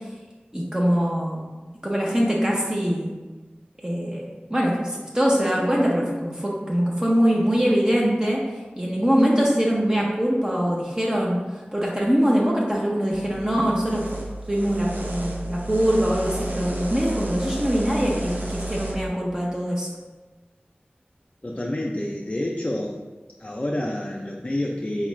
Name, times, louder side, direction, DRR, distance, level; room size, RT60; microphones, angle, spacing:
voice 1, 0.5-1.4 1.8-3.1 3.8-8.4 8.8-11.4 11.7-14.2 14.5-19.9, equal, 20° right, -3 dB, 0.5 m, -23 dB
sound 1, 13.1-18.9, right 2 dB, 60° right, 0.6 m, -32 dB
voice 2, 21.4-23.0 23.4-25.1, left 1 dB, 35° left, 0 dB, 0.3 m, -28 dB
4.3 x 2.3 x 3.0 m, 1.3 s
wide cardioid pair, 50°, 4 cm